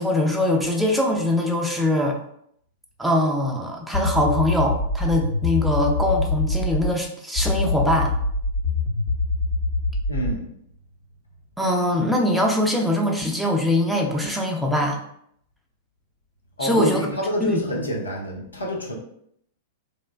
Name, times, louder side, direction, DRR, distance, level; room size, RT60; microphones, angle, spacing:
voice 1, 0.0-2.2 3.0-8.1 11.6-15.0 16.6-17.1 17.4-17.6, left 1 dB, 5° right, 0 dB, 0.5 m, -22 dB
sound 1, 3.9-6.9 7.4-10.4, left 3 dB, 50° left, 0.7 m, -24 dB
voice 2, 10.1-10.4 16.6-18.9, equal, 85° left, -1 dB, 0.7 m, -27 dB
3.1 x 2.1 x 2.4 m, 0.70 s
figure-of-eight pair, 100°, 0 cm